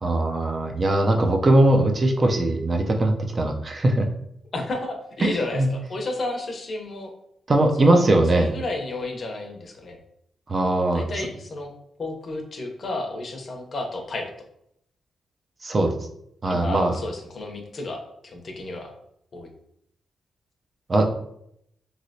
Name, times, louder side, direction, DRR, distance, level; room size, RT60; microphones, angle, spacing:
voice 1, 0.0-4.1 5.2-5.7 7.5-8.5 10.5-11.0 15.6-15.9 16.4-16.9 20.9-21.1, right 1 dB, 35° right, 3 dB, 0.5 m, -20 dB
voice 2, 4.5-7.1 7.8-10.0 10.9-11.7 12.0-14.3 16.5-18.0 18.2-18.9 19.3-19.5, left 2 dB, 45° left, 3 dB, 0.7 m, -32 dB
3.1 x 2.9 x 2.6 m, 0.74 s
cardioid pair, 105°, 0 cm